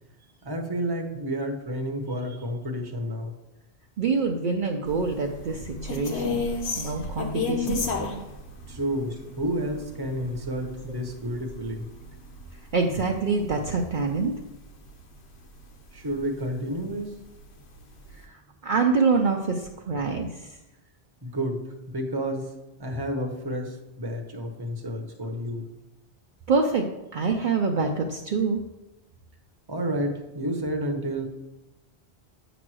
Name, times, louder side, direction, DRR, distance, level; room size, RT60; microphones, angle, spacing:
voice 1, 0.4-3.3 8.7-11.8 15.9-17.1 21.2-22.5 22.8-25.7 29.7-31.3, equal, 25° right, 3 dB, 0.8 m, -30 dB
voice 2, 4.0-6.4 6.8-7.8 12.7-14.3 18.1-20.6 26.5-26.9 27.1-28.6, right 4 dB, 55° right, 2 dB, 0.7 m, -25 dB
sound 1, 4.9-15.3 15.6-15.8 16.2-17.0 17.4-17.5 17.8-18.2, left 3 dB, 80° left, 1.2 m, -34 dB
8.6 x 3.0 x 6.1 m, 0.98 s
omnidirectional pair, 1.1 m